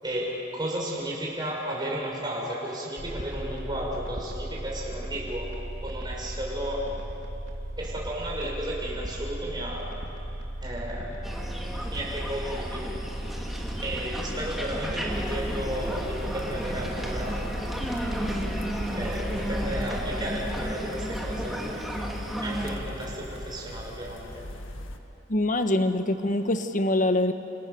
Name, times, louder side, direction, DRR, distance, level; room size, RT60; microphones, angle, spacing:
voice 1, 0.0-6.9 7.8-9.9 10.6-11.3 11.9-12.9 13.8-17.5 17.8-17.9 18.3-18.5 19.0-21.7 22.4-24.4, right 1 dB, 20° right, -3 dB, 6.1 m, -33 dB
sound 1, 3.0-20.7, right 1 dB, 85° right, 3.1 m, -36 dB
sound 2, 11.2-22.7, equal, ahead, 3.0 m, -34 dB
sound 3, 15.1-25.0, equal, 85° left, 1.8 m, -39 dB
voice 2, 25.3-27.3, left 1 dB, 40° left, 8 dB, 1.4 m, -24 dB
29.5 x 28.5 x 7.0 m, 3.0 s
head